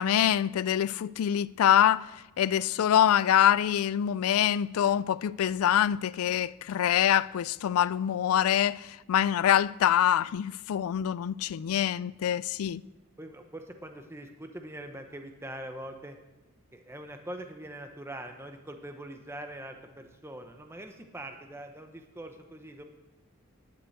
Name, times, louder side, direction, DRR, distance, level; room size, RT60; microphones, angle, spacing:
voice 1, 0.0-2.1 2.4-12.8, left 10 dB, 80° left, 0.3 m, -25 dB
voice 2, 13.2-16.2 16.7-22.8, right 1 dB, 10° right, 0.8 m, -43 dB
11.5 x 6.9 x 7.8 m
head